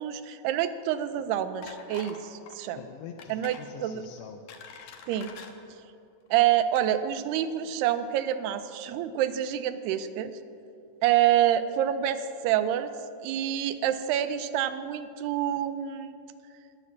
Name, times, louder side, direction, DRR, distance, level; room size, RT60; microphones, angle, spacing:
voice 1, 0.0-2.8 3.3-4.0 5.1-5.3 6.3-10.3 11.0-12.9 13.2-16.1, right 11 dB, 90° right, 10 dB, 2.7 m, -27 dB
sound 1, 1.6-2.2 2.5-2.7 3.2-3.7 4.2-5.5 6.3-6.4 6.7-6.8, left 6 dB, 70° left, 1.9 m, -45 dB
voice 2, 2.8-5.0, left 8 dB, 90° left, 3 dB, 2.8 m, -45 dB
14.0 x 11.0 x 7.2 m, 2.5 s
omnidirectional pair, 4.7 m